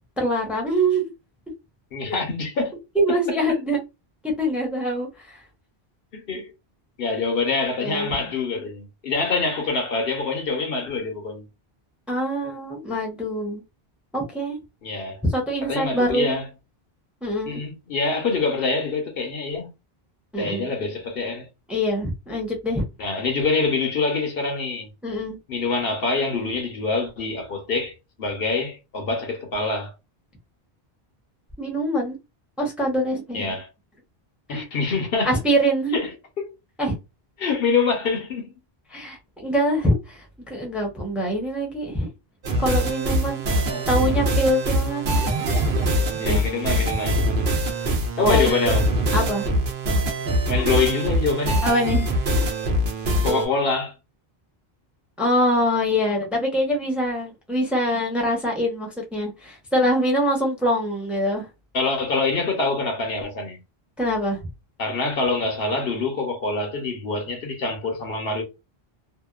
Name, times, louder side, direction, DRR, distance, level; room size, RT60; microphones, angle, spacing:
voice 1, 0.2-1.1 2.1-2.2 3.0-3.8 4.2-5.4 7.8-8.1 12.1-13.6 14.1-14.6 15.2-16.3 17.2-17.6 20.3-20.7 21.7-22.8 25.0-25.4 31.6-32.2 32.6-33.6 34.5-34.6 35.2-35.9 36.8-37.0 38.9-40.2 40.5-42.1 42.6-43.4 43.9-45.2 46.2-46.4 48.2-48.7 49.1-49.5 51.6-52.0 55.2-61.5 64.0-64.4, equal, ahead, 0.7 m, -24 dB
voice 2, 1.9-2.7 3.1-3.2 6.1-6.5 7.0-11.4 14.8-15.2 15.6-16.5 17.5-19.7 20.4-21.5 23.0-24.9 25.5-27.9 28.2-29.9 33.3-33.7 34.5-35.4 35.9-36.5 37.4-38.5 42.5-42.7 43.5-43.9 46.2-47.2 48.2-48.9 50.5-51.6 53.2-53.9 61.7-63.6 64.8-68.4, left 3 dB, 65° left, 1.0 m, -25 dB
sound 1, 42.4-53.5, right 1 dB, 80° right, 1.0 m, -23 dB
2.8 x 2.2 x 2.3 m
omnidirectional pair, 1.0 m